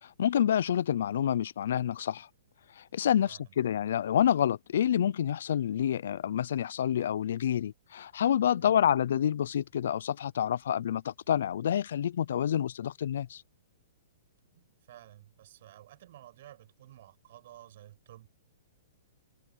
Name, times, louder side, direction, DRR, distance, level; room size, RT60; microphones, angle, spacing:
voice 1, 0.0-2.3 2.7-13.4, left 9 dB, 70° left, 0.6 m, -28 dB
voice 2, 3.3-3.6 8.6-8.9 13.3-13.4 14.5-18.3, right 13 dB, 60° right, 7.5 m, -53 dB
open air
hypercardioid pair, 135°, 0 cm